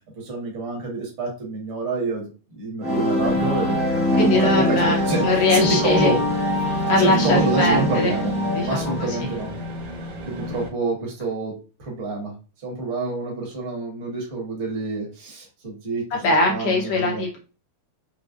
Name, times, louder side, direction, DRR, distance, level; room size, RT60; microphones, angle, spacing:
voice 1, 0.1-3.8 4.1-5.2 5.5-6.2 7.0-8.3 8.6-9.5 10.2-11.5 11.8-12.3 12.6-16.0 16.5-17.2, right 2 dB, 40° right, -1 dB, 1.1 m, -27 dB
sound 1, 2.8-9.7, left 1 dB, 15° left, 0.4 m, -23 dB
sound 2, 3.2-10.7, left 1 dB, 80° right, 1.9 m, -34 dB
voice 2, 4.1-6.1 6.7-8.1 8.5-8.9 16.1-17.4, left 2 dB, 70° left, -1 dB, 1.6 m, -21 dB
5.0 x 2.0 x 2.4 m, 0.34 s
omnidirectional pair, 2.4 m